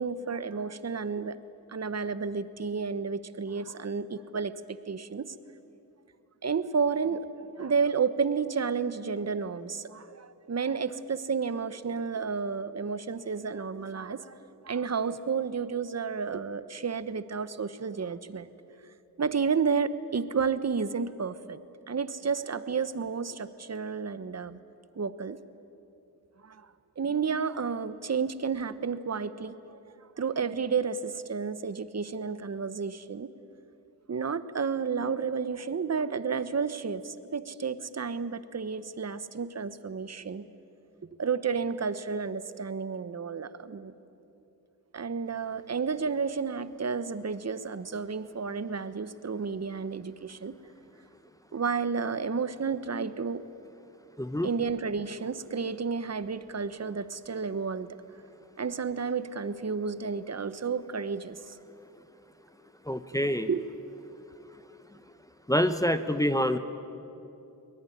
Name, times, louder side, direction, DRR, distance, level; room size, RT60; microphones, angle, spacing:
voice 1, 0.0-1.4 1.7-5.3 6.4-14.4 14.6-18.5 19.2-21.6 21.9-24.6 25.0-25.4 26.4-26.7 27.0-29.8 30.2-33.3 34.1-40.5 41.2-43.9 44.9-50.5 51.5-53.4 54.4-57.9 58.6-61.6 63.5-63.7, right 5 dB, 40° right, 14 dB, 1.1 m, -31 dB
voice 2, 54.2-54.5 62.9-63.5 65.5-66.6, equal, 10° left, 9 dB, 1.0 m, -26 dB
23.0 x 18.5 x 10.0 m, 2.8 s
cardioid pair, 65°, 40 cm